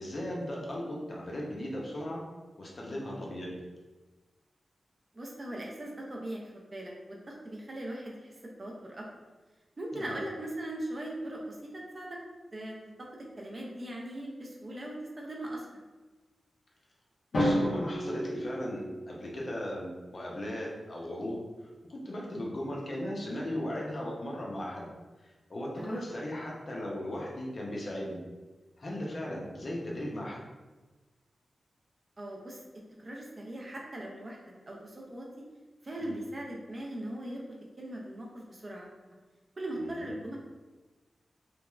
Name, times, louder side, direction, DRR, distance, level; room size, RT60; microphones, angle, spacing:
voice 1, 0.0-2.2 2.6-3.5 9.9-10.2 17.3-24.9 25.2-28.2 28.8-30.4 36.0-36.2 39.7-40.2, left 1 dB, 40° left, -3 dB, 0.5 m, -37 dB
voice 2, 5.1-8.3 8.6-9.1 9.8-12.2 12.5-15.8 25.8-26.0 32.2-32.6 33.0-34.4 34.7-35.3 35.8-37.4 37.8-38.9 39.6-40.4, right 1 dB, 30° right, -2 dB, 0.4 m, -39 dB
Drum, 17.3-19.4, equal, 85° left, 0.8 m, -30 dB
3.0 x 2.3 x 2.2 m, 1.2 s
wide cardioid pair, 180°, 0 cm